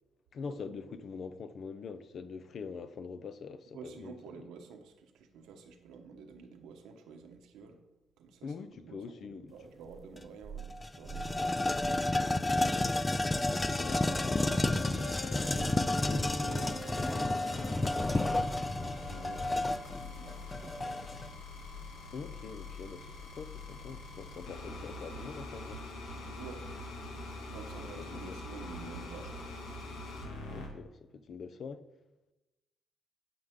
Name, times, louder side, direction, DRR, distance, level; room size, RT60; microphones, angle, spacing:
voice 1, 0.3-4.5 8.4-9.5 12.6-12.9 13.8-16.7 22.1-26.1 27.9-28.4 30.5-31.9, left 5 dB, 55° left, 0.6 m, -44 dB
voice 2, 3.7-7.8 8.2-8.5 8.8-9.0 9.3-12.7 15.5-21.1 26.4-26.7 27.5-29.5, right 6 dB, 90° right, 1.2 m, -49 dB
sound 1, 10.2-10.3 10.6-21.3, left 2 dB, 15° left, 0.4 m, -31 dB
sound 2, 13.3-30.7, left 2 dB, 90° left, 1.7 m, -44 dB
11.5 x 5.7 x 3.7 m
cardioid pair, 90°, 0 cm